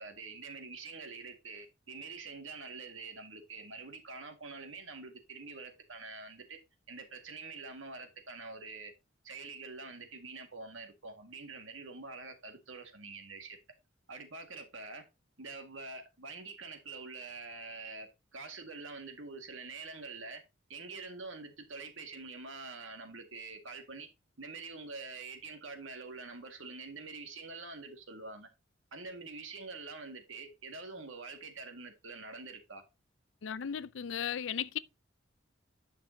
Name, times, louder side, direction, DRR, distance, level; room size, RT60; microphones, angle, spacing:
voice 1, 0.0-6.6 6.9-8.9 9.2-13.6 14.1-15.1 15.4-20.4 20.7-24.1 24.4-28.5 28.9-32.8, right 3 dB, 90° right, 2.0 m, -46 dB
voice 2, 33.4-34.8, left 8 dB, 75° left, 0.5 m, -36 dB
10.5 x 6.0 x 2.8 m
head